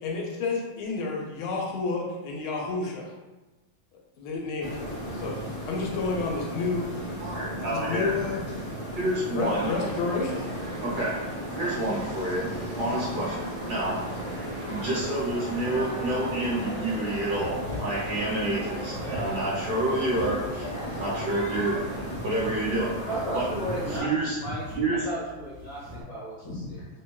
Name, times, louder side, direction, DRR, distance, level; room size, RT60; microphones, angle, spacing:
voice 1, 0.0-3.1 4.2-7.3 7.7-8.4 9.3-10.6, left 3 dB, 85° left, -1 dB, 1.5 m, -31 dB
sound 1, 4.6-24.0, equal, 35° left, 0.8 m, -35 dB
voice 2, 7.2-8.1 8.9-9.7 10.8-11.1 11.6-12.5 12.7-13.9 14.7-20.7 21.0-21.8 22.2-22.9 23.3-23.5 23.9-24.4 24.7-25.1, right 1 dB, 60° right, -7 dB, 1.2 m, -28 dB
sound 2, 9.4-22.0, right 1 dB, 40° right, 0.9 m, -40 dB
sound 3, 17.0-26.0, equal, 85° right, 0.8 m, -42 dB
voice 3, 23.1-24.1 24.4-24.6 24.9-26.9, right 1 dB, 60° left, -8 dB, 1.5 m, -34 dB
3.4 x 2.2 x 2.2 m, 1.1 s
omnidirectional pair, 2.2 m